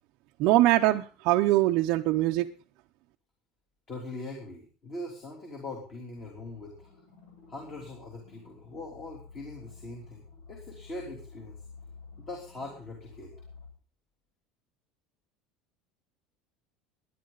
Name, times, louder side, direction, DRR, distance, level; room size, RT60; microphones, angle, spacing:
voice 1, 0.4-2.5, right 16 dB, 50° right, 2 dB, 0.6 m, -23 dB
voice 2, 3.9-6.9 7.5-10.2 10.5-11.6 12.2-13.3, left 2 dB, 25° left, 0 dB, 3.2 m, -41 dB
sound 1, 6.1-13.7, left 4 dB, 80° left, 7.8 m, -51 dB
19.5 x 10.5 x 3.9 m, 0.39 s
cardioid pair, 170°, 0 cm